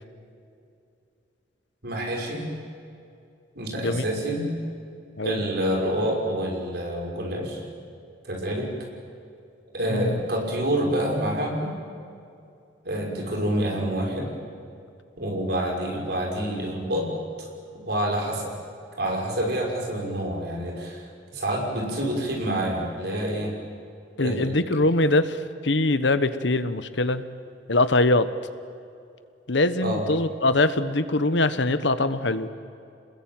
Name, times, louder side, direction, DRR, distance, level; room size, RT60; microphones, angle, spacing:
voice 1, 1.8-2.5 3.5-4.5 5.2-7.6 8.2-8.7 9.7-11.8 12.8-14.3 15.2-17.1 17.4-17.5 17.9-18.5 19.0-21.1 21.3-23.5 24.2-24.5 29.8-30.1, right 1 dB, 55° right, 0 dB, 5.9 m, -27 dB
voice 2, 24.2-27.3 27.7-28.3 29.5-32.5, left 2 dB, 70° left, 12 dB, 1.3 m, -23 dB
27.5 x 20.5 x 9.1 m, 2.5 s
head